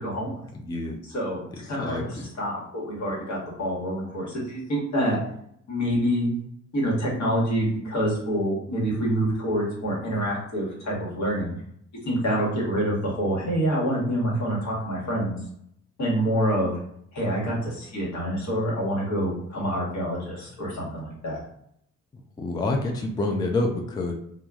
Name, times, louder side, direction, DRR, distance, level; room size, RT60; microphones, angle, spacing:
voice 1, 0.0-0.4 1.0-5.2 5.7-6.3 6.7-11.5 12.0-15.4 16.0-16.7 17.1-21.4, equal, 65° left, -4 dB, 1.4 m, -26 dB
voice 2, 0.5-1.0 1.5-2.3 22.4-24.1, left 2 dB, 15° left, 1 dB, 0.3 m, -28 dB
2.9 x 2.3 x 2.3 m, 0.70 s
cardioid pair, 90°, 30 cm